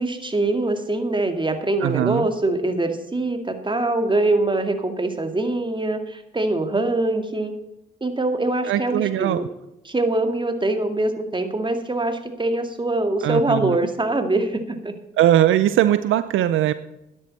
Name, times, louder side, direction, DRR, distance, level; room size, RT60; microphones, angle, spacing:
voice 1, 0.0-7.5 8.0-9.5 9.8-14.9, right 2 dB, 20° right, 6 dB, 2.3 m, -23 dB
voice 2, 1.8-2.3 8.7-9.5 13.2-13.8 15.2-16.7, right 12 dB, 70° right, 14 dB, 0.5 m, -20 dB
13.0 x 10.5 x 4.3 m, 0.90 s
hypercardioid pair, 45°, 21 cm